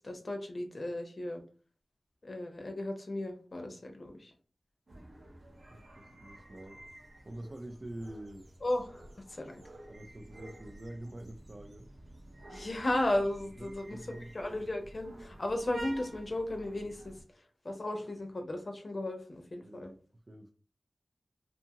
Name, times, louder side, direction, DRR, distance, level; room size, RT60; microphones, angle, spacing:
voice 1, 0.0-1.4 2.2-4.3 8.6-9.0 9.3-9.6 12.5-17.2 17.6-19.9, left 1 dB, 50° left, 4 dB, 0.6 m, -35 dB
sound 1, 4.9-17.2, right 1 dB, 75° right, 0.7 m, -51 dB
voice 2, 5.7-6.8 7.2-8.5 9.9-11.9 13.6-14.3 19.6-20.0 20.3-20.5, right 1 dB, 45° right, 2 dB, 0.4 m, -46 dB
2.7 x 2.3 x 2.8 m, 0.39 s
wide cardioid pair, 70°, 0 cm